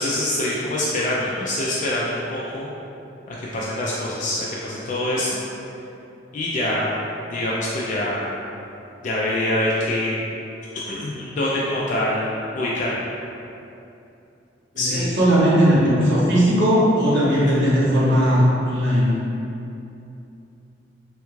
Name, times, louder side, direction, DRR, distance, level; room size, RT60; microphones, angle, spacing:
voice 1, 0.0-2.7 3.3-5.4 6.3-7.0 7.3-8.4 9.0-10.2 10.9-13.0 14.8-15.1, left 1 dB, 40° left, -6 dB, 0.3 m, -25 dB
voice 2, 14.7-19.2, equal, 65° right, -7 dB, 0.9 m, -18 dB
3.4 x 2.3 x 3.0 m, 2.8 s
head